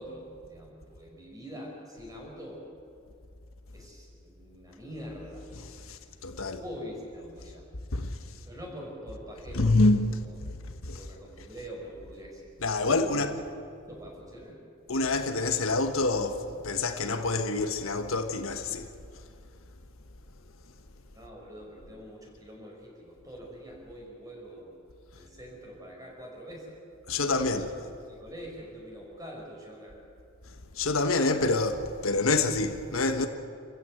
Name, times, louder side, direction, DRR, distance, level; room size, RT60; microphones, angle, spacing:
voice 1, 0.0-2.7 3.7-5.5 6.4-7.7 8.2-9.9 10.2-10.4 10.9-12.4 12.8-13.4 13.8-14.6 21.1-24.7 25.2-26.8 27.4-27.7 28.0-30.0, equal, 15° right, 5.8 m, -44 dB
voice 2, 5.6-6.6 7.9-8.2 9.5-10.1 10.4-11.0 12.6-13.3 14.9-18.9 27.1-27.7 30.7-33.3, left 3 dB, 85° left, 1.4 m, -27 dB
26.5 x 15.5 x 8.0 m
head